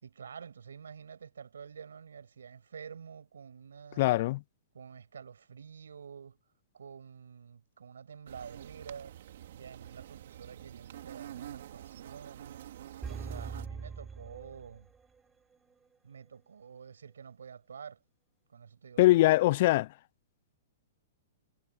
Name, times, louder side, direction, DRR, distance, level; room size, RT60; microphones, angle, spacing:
voice 1, 0.0-4.0 4.7-6.4 6.7-9.1 9.5-12.6 13.1-14.9 16.0-18.0 18.5-19.3, right 7 dB, 90° right, 6.4 m, -48 dB
voice 2, 4.0-4.4 19.0-19.9, left 17 dB, 55° left, 0.3 m, -22 dB
sound 1, 8.3-13.7, right 12 dB, 65° right, 3.8 m, -47 dB
sound 2, 13.0-15.2 15.5-15.6, right 5 dB, 15° right, 4.6 m, -42 dB
hypercardioid pair, 130°, 0 cm